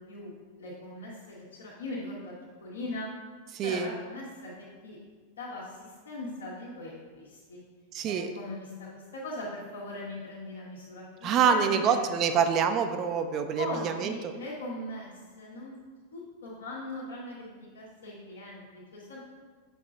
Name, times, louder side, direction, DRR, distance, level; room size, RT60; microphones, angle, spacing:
voice 1, 0.1-2.3 2.6-3.1 3.6-4.5 4.8-5.0 5.3-7.6 8.0-12.5 13.6-15.8 16.1-19.2, left 1 dB, 70° left, -5 dB, 1.3 m, -40 dB
voice 2, 3.5-3.9 7.9-8.3 11.2-14.2, right 7 dB, 35° right, 7 dB, 0.5 m, -26 dB
7.9 x 5.8 x 2.5 m, 1.5 s
figure-of-eight pair, 90°, 0 cm